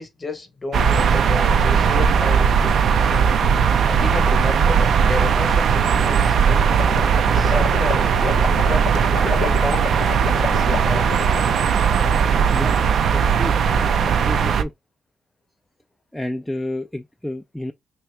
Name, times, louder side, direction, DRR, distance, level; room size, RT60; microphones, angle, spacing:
voice 1, 0.0-3.4 3.8-6.8 7.3-11.1, left 3 dB, 25° left, 1.0 m, -32 dB
sound 1, 0.7-14.6, right 6 dB, 60° right, 0.5 m, -18 dB
sound 2, 6.7-11.5, left 7 dB, 75° left, 0.5 m, -31 dB
voice 2, 12.5-13.6 13.8-14.7 16.1-17.7, left 1 dB, 5° left, 0.4 m, -30 dB
2.9 x 2.9 x 3.2 m
cardioid pair, 90°, 0 cm